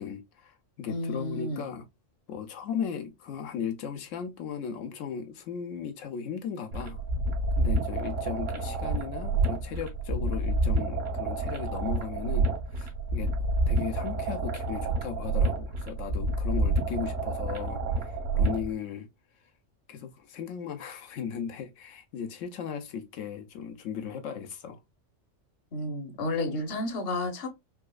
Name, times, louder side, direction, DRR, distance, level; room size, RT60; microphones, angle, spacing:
voice 1, 0.0-1.8 2.3-7.0 7.6-13.3 13.7-19.1 19.9-24.8, left 7 dB, 85° left, 1.0 m, -37 dB
voice 2, 0.9-1.6 25.7-27.5, left 2 dB, 55° left, 1.0 m, -31 dB
sound 1, 6.7-18.7, right 2 dB, 80° right, 1.4 m, -28 dB
4.1 x 2.4 x 2.2 m
omnidirectional pair, 1.3 m